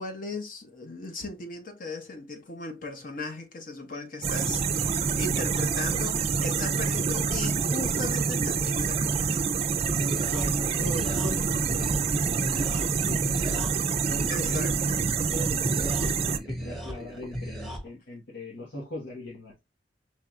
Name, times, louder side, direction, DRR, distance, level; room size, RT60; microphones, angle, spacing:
voice 1, 0.0-9.5 14.3-15.0, left 2 dB, 50° left, 1.0 m, -37 dB
sound 1, 4.2-16.4, right 5 dB, 35° right, 0.4 m, -27 dB
voice 2, 7.0-7.3 10.0-14.6 15.3-19.6, left 1 dB, 80° left, 1.2 m, -40 dB
sound 2, 9.6-17.8, equal, ahead, 0.9 m, -37 dB
4.7 x 3.3 x 2.4 m
head